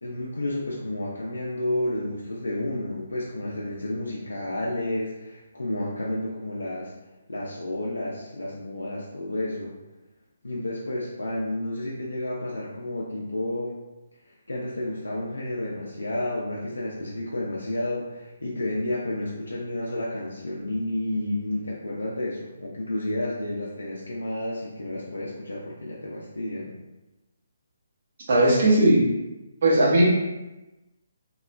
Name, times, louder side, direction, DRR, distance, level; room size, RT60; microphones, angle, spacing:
voice 1, 0.0-6.9 7.3-9.7 10.4-13.8 14.3-26.7, left 1 dB, 80° left, -5 dB, 0.4 m, -31 dB
voice 2, 28.3-29.1 29.6-30.1, right 1 dB, 50° right, -7 dB, 0.9 m, -18 dB
2.9 x 2.0 x 2.4 m, 1.0 s
figure-of-eight pair, 140°, 0 cm